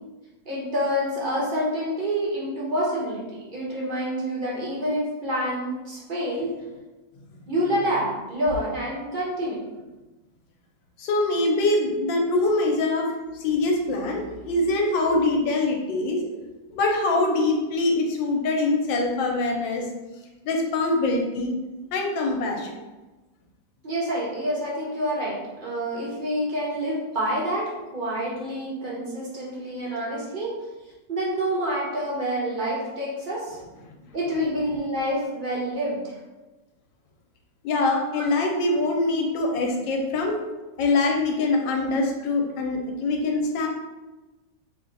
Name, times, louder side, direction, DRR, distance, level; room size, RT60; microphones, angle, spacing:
voice 1, 0.4-6.5 7.5-9.7 16.2-16.3 23.8-30.5 31.1-33.6 34.1-36.2 38.1-38.2, equal, 40° right, -5 dB, 0.7 m, -27 dB
voice 2, 11.0-13.1 13.4-16.2 16.7-19.8 20.4-21.5 21.9-22.7 37.6-40.4 40.8-43.7, left 2 dB, 75° left, 1 dB, 1.4 m, -23 dB
3.3 x 3.1 x 3.8 m, 1.1 s
omnidirectional pair, 2.0 m